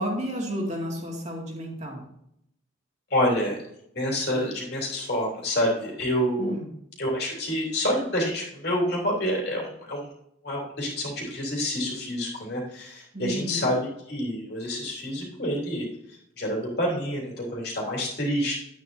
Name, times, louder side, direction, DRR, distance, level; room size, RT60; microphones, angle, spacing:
voice 1, 0.0-2.0 6.4-6.7 13.1-13.7, equal, 35° right, -2 dB, 2.3 m, -31 dB
voice 2, 3.1-3.6 3.9-6.5 7.0-10.1 10.4-18.5, equal, 55° left, -3 dB, 3.4 m, -28 dB
11.0 x 9.1 x 2.8 m, 0.75 s
head